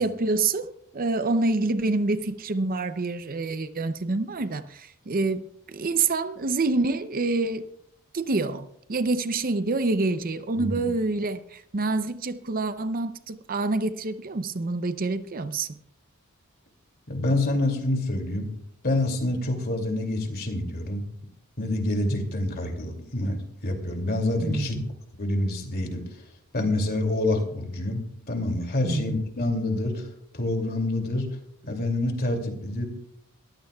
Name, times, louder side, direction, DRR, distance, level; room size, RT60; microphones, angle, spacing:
voice 1, 0.0-7.7 8.1-15.8 24.4-24.9 28.8-29.2, right 3 dB, 40° right, 0.6 m, -27 dB
voice 2, 17.1-18.5 18.8-21.0 21.6-24.8 25.2-26.0 26.5-30.1 30.3-31.4 31.6-32.9, left 1 dB, 45° left, 2.6 m, -27 dB
22.5 x 15.0 x 2.3 m
head